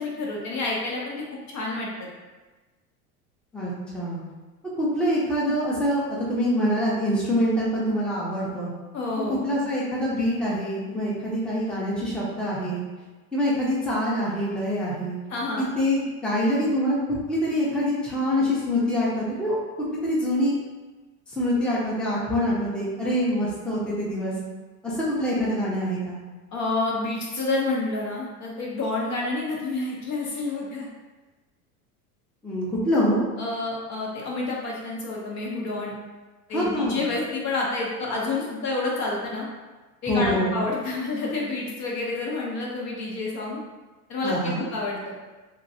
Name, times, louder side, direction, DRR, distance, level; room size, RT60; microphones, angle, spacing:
voice 1, 0.0-2.1 8.9-9.5 15.3-15.7 26.5-30.9 33.4-35.9 36.5-39.5 40.0-43.6 44.1-45.1, left 2 dB, 40° left, -3 dB, 0.7 m, -29 dB
voice 2, 3.5-4.2 4.8-8.7 9.3-12.8 13.3-15.2 15.6-17.0 17.3-19.6 20.0-20.6 21.3-24.3 24.8-26.2 32.4-33.2 36.5-37.0 40.1-40.6 44.2-44.7, equal, ahead, -7 dB, 0.7 m, -25 dB
2.9 x 2.6 x 2.6 m, 1.2 s
hypercardioid pair, 85°, 45 cm